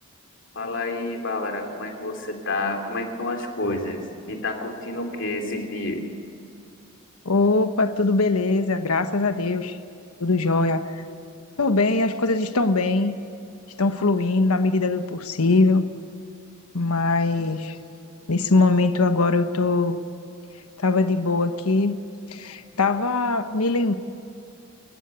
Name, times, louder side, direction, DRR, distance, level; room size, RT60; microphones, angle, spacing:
voice 1, 0.5-4.0 4.3-6.0, left 2 dB, 55° left, 3 dB, 3.2 m, -29 dB
voice 2, 7.2-9.8 10.2-10.8 11.6-13.1 13.8-15.8 16.7-17.8 18.3-20.0 20.8-22.0 22.3-23.9, left 3 dB, 90° left, 8 dB, 1.2 m, -21 dB
29.5 x 14.5 x 8.2 m, 2.7 s
head